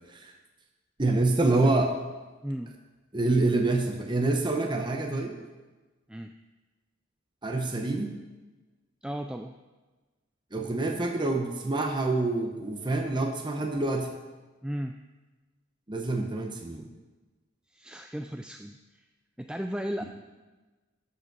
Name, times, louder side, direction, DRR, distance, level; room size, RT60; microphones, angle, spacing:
voice 1, 1.0-1.9 3.1-5.3 7.4-8.2 10.5-14.1 15.9-16.9 20.0-20.1, right 2 dB, 25° right, 3 dB, 0.9 m, -26 dB
voice 2, 2.4-2.7 6.1-6.3 9.0-9.6 14.6-15.0 17.7-19.0 19.4-20.0, equal, 5° right, 6 dB, 0.3 m, -35 dB
13.0 x 5.7 x 6.0 m, 1.2 s
head